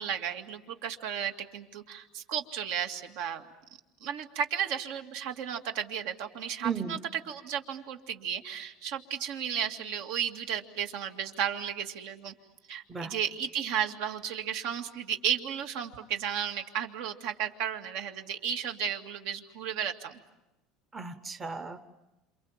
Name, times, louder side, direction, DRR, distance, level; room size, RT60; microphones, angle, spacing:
voice 1, 0.0-3.4 4.0-7.0 7.3-12.3 12.7-20.2, right 8 dB, 70° right, 6 dB, 2.2 m, -34 dB
voice 2, 6.6-7.0 12.9-13.1 20.9-21.8, right 6 dB, 15° right, 9 dB, 0.9 m, -35 dB
28.0 x 28.0 x 7.4 m, 0.97 s
cardioid pair, 170°, 0 cm